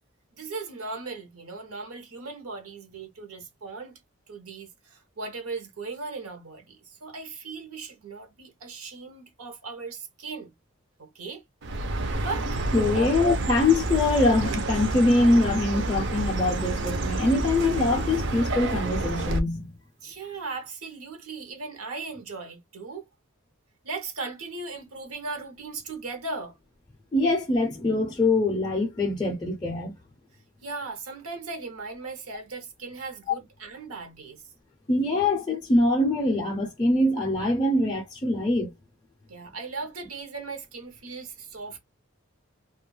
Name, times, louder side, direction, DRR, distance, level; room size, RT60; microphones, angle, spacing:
voice 1, 0.4-4.0 4.3-10.5 11.0-11.4 11.8-12.6 12.9-13.1 20.0-23.1 23.8-26.6 30.6-34.4 39.3-41.8, right 3 dB, 85° right, 0.7 m, -38 dB
Chirp tweet, 11.6-19.4, right 2 dB, 55° right, 0.4 m, -29 dB
voice 2, 12.7-19.7 27.1-29.9 34.9-38.7, left 2 dB, 20° left, 0.4 m, -23 dB
2.3 x 2.1 x 3.0 m
head